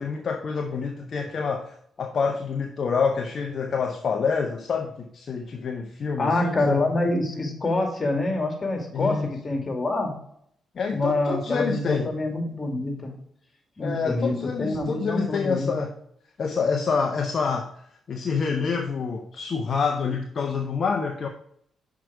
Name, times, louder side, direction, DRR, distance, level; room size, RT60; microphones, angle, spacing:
voice 1, 0.0-6.8 8.9-9.3 10.7-12.1 13.8-15.9 16.4-17.7 18.1-21.3, left 5 dB, 55° left, 4 dB, 0.7 m, -27 dB
voice 2, 6.2-10.1 10.9-13.1 13.8-15.8, left 2 dB, 35° left, 3 dB, 2.1 m, -26 dB
6.1 x 4.7 x 4.6 m, 0.68 s
supercardioid pair, 50°, 0 cm